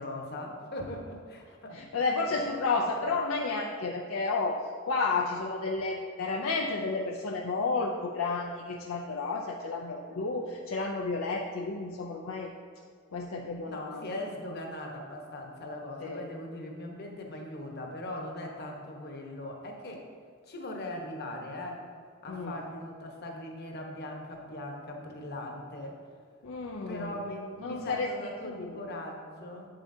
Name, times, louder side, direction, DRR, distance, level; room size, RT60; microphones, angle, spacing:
voice 1, 0.0-1.8 2.8-3.0 13.7-20.0 20.5-21.8 22.2-26.0 26.9-29.7, left 1 dB, 50° left, 1 dB, 1.1 m, -40 dB
voice 2, 1.7-12.5 13.1-14.1 16.0-16.2 22.3-22.5 26.4-27.2 27.6-28.1 28.4-28.9, left 3 dB, 70° left, 1 dB, 0.5 m, -31 dB
8.1 x 7.7 x 2.7 m, 2.2 s
head